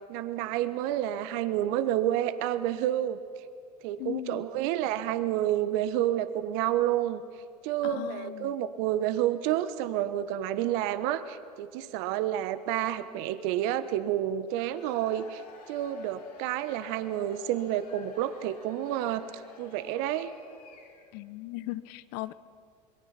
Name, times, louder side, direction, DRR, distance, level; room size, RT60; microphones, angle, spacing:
voice 1, 0.1-3.2 3.8-7.2 7.6-15.4 15.7-19.2 19.6-20.3, right 12 dB, 55° right, 13 dB, 1.3 m, -29 dB
voice 2, 4.0-4.5 7.8-8.5 21.1-22.3, left 16 dB, 55° left, 17 dB, 0.9 m, -37 dB
Cheering / Crowd, 14.5-21.2, left 4 dB, 80° left, 6.0 m, -52 dB
27.0 x 22.5 x 5.9 m, 2.2 s
hypercardioid pair, 85°, 21 cm